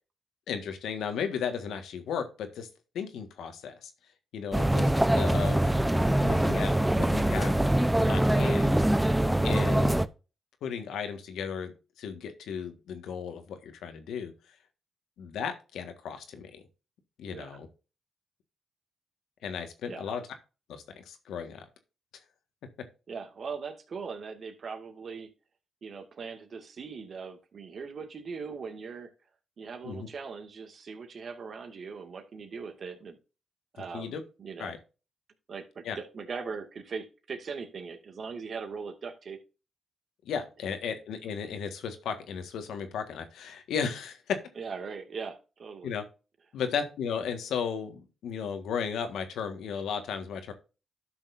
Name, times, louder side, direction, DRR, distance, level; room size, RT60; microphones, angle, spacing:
voice 1, 0.5-2.7 2.9-3.9 4.3-5.7 6.2-7.6 8.1-8.8 9.4-10.0 10.6-11.7 12.0-14.5 15.2-16.6 17.2-17.7 19.4-20.2 20.7-21.7 29.8-30.1 33.8-34.2 34.6-34.8 35.8-36.0 40.2-44.4 45.8-46.0 46.5-50.5, left 7 dB, 85° left, 7 dB, 1.6 m, -35 dB
sound 1, 4.5-10.1, right 1 dB, 10° right, 0.7 m, -24 dB
voice 2, 23.1-25.3 25.8-29.1 29.6-33.2 33.7-34.1 34.4-34.7 35.5-39.4 44.6-45.9, right 5 dB, 60° right, 5 dB, 2.1 m, -40 dB
12.0 x 6.5 x 2.6 m, 0.31 s
cardioid pair, 65°, 0 cm